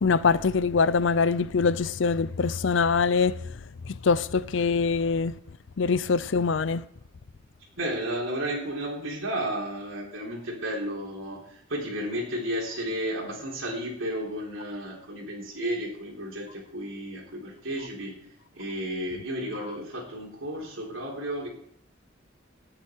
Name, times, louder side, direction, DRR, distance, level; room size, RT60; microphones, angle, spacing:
voice 1, 0.0-3.4 3.8-5.4 5.8-6.8, left 5 dB, 65° left, 0.5 m, -23 dB
voice 2, 7.8-18.1 18.5-21.5, right 1 dB, 80° right, 3.7 m, -33 dB
19.0 x 8.0 x 4.6 m
head